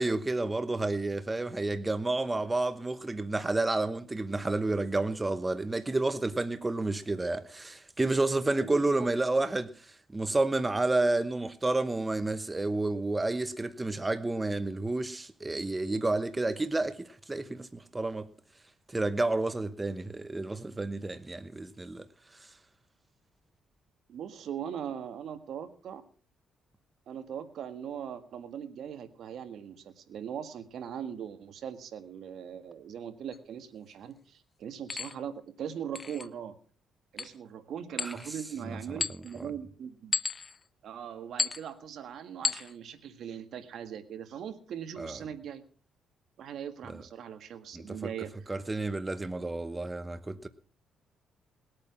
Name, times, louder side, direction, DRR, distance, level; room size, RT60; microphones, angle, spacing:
voice 1, 0.0-18.3 18.9-22.0 22.4-22.5 38.0-38.1 38.6-38.8 39.4-39.5 45.0-45.2 47.7-48.1 48.5-50.5, right 2 dB, 20° right, 0.9 m, -30 dB
voice 2, 8.5-9.1 24.1-26.0 27.1-36.6 37.1-40.1 40.8-45.6 46.4-48.5, right 8 dB, 70° right, 1.8 m, -40 dB
sound 1, 33.3-33.4 34.9-35.2 36.0-36.3 37.2-37.4 38.0-38.4 39.0-39.4 40.1-40.6 41.4-41.7 42.4-42.7, left 4 dB, 35° left, 0.6 m, -33 dB
20.0 x 8.8 x 5.9 m
cardioid pair, 90°, 0 cm